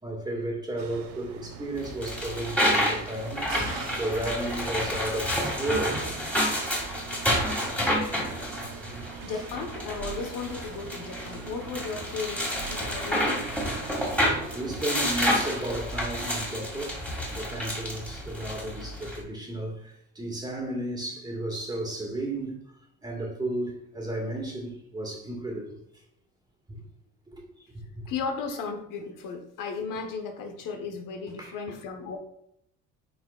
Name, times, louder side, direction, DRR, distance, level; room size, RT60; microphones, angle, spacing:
voice 1, 0.0-3.5 4.0-6.1 8.9-9.5 11.3-11.4 14.5-17.0 17.3-19.8 20.2-22.5 23.0-25.8 26.7-26.8 27.3-27.4 28.0-28.1 31.4-31.6, right 1 dB, 15° right, 1.9 m, -33 dB
sound 1, 0.8-14.9, right 7 dB, 85° right, 0.9 m, -44 dB
sound 2, 1.8-19.2, equal, 5° left, 2.1 m, -29 dB
voice 2, 9.2-13.5 28.1-32.2, left 5 dB, 75° left, 1.3 m, -35 dB
10.5 x 4.5 x 2.4 m
cardioid pair, 135°, 32 cm